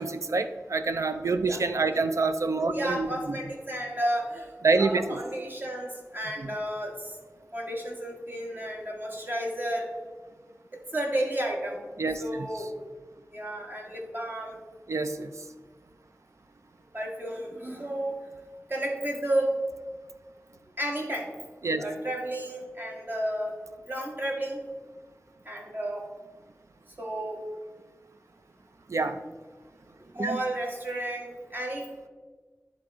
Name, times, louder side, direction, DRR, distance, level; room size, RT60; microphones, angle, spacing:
voice 1, 0.0-3.4 4.6-5.2 6.4-6.5 12.0-12.2 14.9-15.3 21.6-21.8 28.9-29.2 30.2-30.4, right 3 dB, 75° right, 9 dB, 0.5 m, -27 dB
voice 2, 2.7-7.2 7.5-9.9 10.9-11.8 12.2-12.7 13.3-14.6 16.9-18.2 18.7-19.6 20.8-21.3 21.8-23.6 23.8-24.6 25.4-26.0 27.0-27.4 30.1-31.9, right 1 dB, 40° right, -1 dB, 1.6 m, -32 dB
11.0 x 3.8 x 3.6 m, 1.4 s
wide cardioid pair, 55°, 5 cm